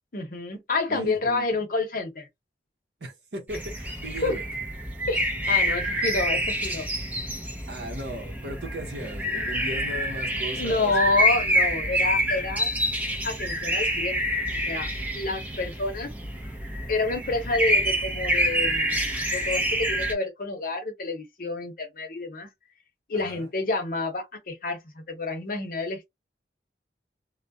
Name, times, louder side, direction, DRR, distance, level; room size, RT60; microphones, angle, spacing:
voice 1, 0.1-2.3 4.2-4.3 5.1-6.9 10.6-12.7 13.2-14.4 14.7-14.9 15.1-16.1 16.9-22.5 23.1-26.1, left 3 dB, 50° left, 0.8 m, -29 dB
voice 2, 0.9-1.5 3.0-4.4 7.7-11.1 23.1-23.5, right 1 dB, 70° right, 0.8 m, -37 dB
sound 1, 3.5-20.1, equal, 10° right, 0.5 m, -27 dB
2.3 x 2.1 x 2.6 m
head